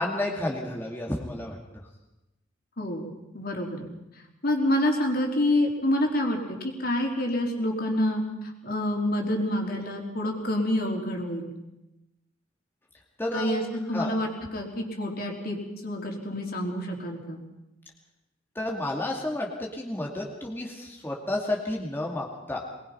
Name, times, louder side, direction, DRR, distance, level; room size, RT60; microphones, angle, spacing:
voice 1, 0.0-1.6 13.2-13.5 13.9-14.1 18.5-22.6, left 1 dB, 10° left, -2 dB, 2.5 m, -31 dB
voice 2, 2.8-3.9 4.4-8.2 8.6-11.5 13.3-15.6 15.8-17.4, left 1 dB, 55° left, 1 dB, 4.0 m, -27 dB
23.0 x 20.5 x 5.8 m, 0.95 s
head